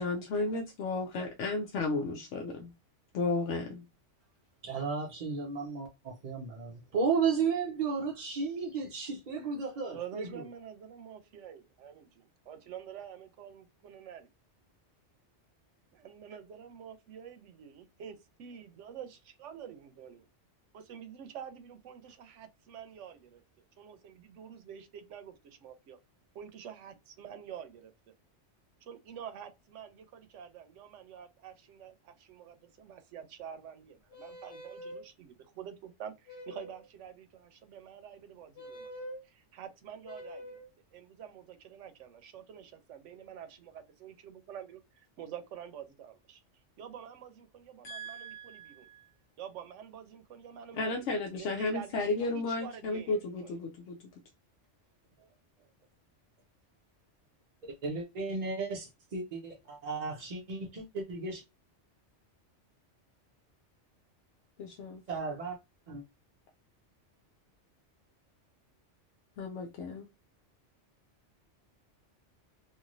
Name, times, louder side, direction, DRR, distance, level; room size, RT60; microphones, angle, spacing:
voice 1, 0.0-2.7 3.1-3.8 47.8-49.1 50.7-54.0 64.6-65.0 69.4-70.1, left 3 dB, 80° left, 0.9 m, -34 dB
voice 2, 4.6-10.5 57.6-61.4 65.1-65.6 65.9-66.0, right 5 dB, 50° right, 0.6 m, -34 dB
voice 3, 9.9-14.3 15.9-20.3 20.7-23.4 23.8-26.0 26.3-28.1 28.8-38.9 39.2-40.6 40.9-48.9 49.4-51.0 51.4-52.0 52.3-53.6, right 8 dB, 85° right, 1.0 m, -47 dB
sound 1, 34.1-35.0 36.3-36.9 38.6-39.2 40.0-40.7, equal, 55° left, 1.4 m, -45 dB
3.0 x 2.5 x 2.5 m
omnidirectional pair, 1.2 m